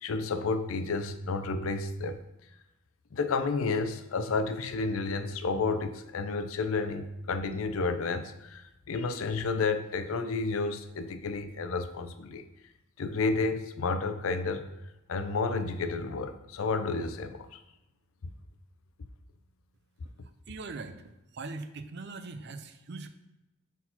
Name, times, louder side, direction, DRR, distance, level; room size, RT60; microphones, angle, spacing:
voice 1, 0.0-2.2 3.1-12.4 13.0-14.7 15.1-17.6, left 4 dB, 80° left, 9 dB, 0.5 m, -31 dB
voice 2, 20.5-21.0 21.3-23.1, right 3 dB, 55° right, 8 dB, 0.5 m, -40 dB
4.3 x 4.1 x 5.6 m, 0.95 s
head